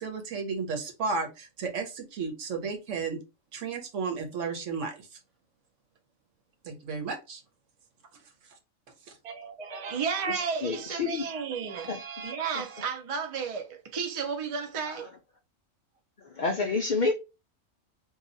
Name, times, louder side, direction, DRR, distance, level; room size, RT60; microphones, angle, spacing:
voice 1, 0.0-3.2 3.5-5.2 6.6-7.4 9.1-9.2, right 4 dB, 65° right, 1.1 m, -33 dB
voice 2, 9.2-15.1, right 6 dB, 50° right, 0.4 m, -33 dB
voice 3, 10.3-11.3 11.9-12.0 14.8-15.0 16.3-17.1, left 4 dB, 80° left, 0.4 m, -29 dB
2.8 x 2.3 x 3.9 m
omnidirectional pair, 1.4 m